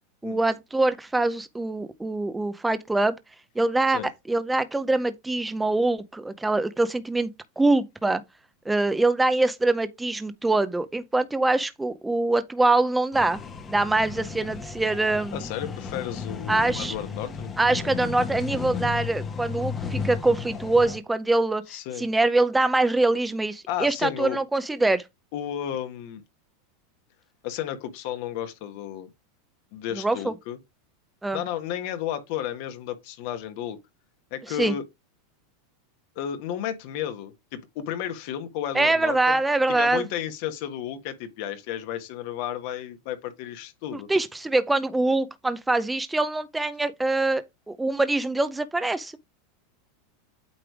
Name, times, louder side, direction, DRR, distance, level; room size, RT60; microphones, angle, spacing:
voice 1, 0.2-3.1 3.6-4.0 4.3-7.3 7.6-8.2 8.7-13.4 13.7-15.4 16.5-16.9 17.6-21.6 22.0-25.0 30.0-30.3 31.2-31.4 34.6-34.8 38.7-40.0 44.1-49.1, right 2 dB, 10° right, 0.6 m, -24 dB
sound 1, 13.1-21.0, left 5 dB, 25° left, 1.0 m, -34 dB
voice 2, 15.3-17.9 21.7-22.1 23.7-24.4 25.3-26.2 27.4-29.1 29.7-30.6 31.3-33.8 34.3-34.8 36.1-39.4 39.7-44.1, left 10 dB, 60° left, 1.4 m, -33 dB
8.6 x 3.3 x 4.8 m
supercardioid pair, 130°, 0 cm